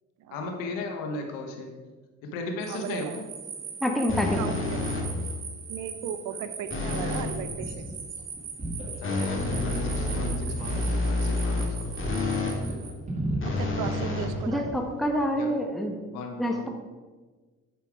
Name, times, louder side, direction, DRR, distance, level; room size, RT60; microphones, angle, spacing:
voice 1, 0.3-1.7 2.2-3.2 9.0-12.1 15.3-15.5 16.1-16.7, left 3 dB, 90° left, 3 dB, 1.3 m, -36 dB
sound 1, 2.6-12.9, right 6 dB, 50° right, 1.9 m, -41 dB
voice 2, 2.7-3.2 4.4-4.8 5.7-7.9 10.6-10.7 13.4-14.7, right 9 dB, 75° right, 10 dB, 0.8 m, -37 dB
voice 3, 3.8-4.4 14.5-16.0 16.4-16.7, equal, ahead, 2 dB, 1.1 m, -27 dB
sound 2, 4.1-5.3 6.7-7.4 9.0-12.6 13.4-14.9, left 2 dB, 40° left, 2.4 m, -29 dB
sound 3, 6.9-7.1 7.4-7.9 8.2-9.0 9.3-11.4 11.7-15.1, right 1 dB, 20° right, 2.3 m, -36 dB
9.5 x 5.7 x 4.7 m, 1.4 s
supercardioid pair, 80°, 32 cm